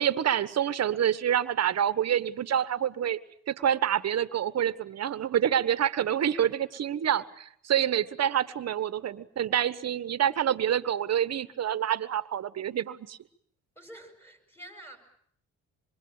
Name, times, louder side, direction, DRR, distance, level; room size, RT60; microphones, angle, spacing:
voice 1, 0.0-3.2 3.5-13.2, right 10 dB, 55° right, 14 dB, 1.3 m, -27 dB
voice 2, 13.7-15.0, right 1 dB, 10° left, 5 dB, 7.9 m, -48 dB
26.5 x 22.5 x 8.8 m, 0.66 s
cardioid pair, 90°, 30 cm